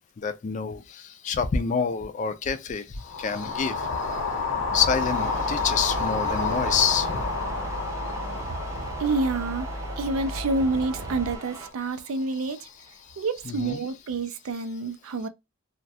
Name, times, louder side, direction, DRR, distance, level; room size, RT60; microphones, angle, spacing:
voice 1, 0.2-3.9 4.7-7.2 13.1-13.8, left 6 dB, 35° left, 0.3 m, -27 dB
sound 1, 3.0-11.3, left 4 dB, 65° left, 0.8 m, -30 dB
sound 2, 4.6-11.4, equal, 50° right, 0.7 m, -36 dB
sound 3, 4.9-11.7, right 4 dB, 15° right, 0.5 m, -41 dB
voice 2, 9.0-12.7 13.2-15.3, right 3 dB, 75° right, 0.4 m, -28 dB
2.3 x 2.1 x 2.6 m
head